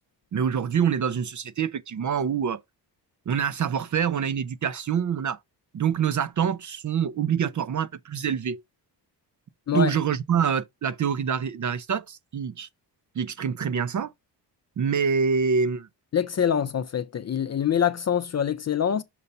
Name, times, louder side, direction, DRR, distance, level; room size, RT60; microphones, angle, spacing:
voice 1, 0.3-2.6 3.3-5.4 5.7-8.6 9.7-12.7 13.1-14.1 14.8-15.9, right 7 dB, 45° right, 0.6 m, -26 dB
voice 2, 16.1-19.0, left 8 dB, 40° left, 0.5 m, -25 dB
6.9 x 2.7 x 5.3 m
cardioid pair, 70°, 44 cm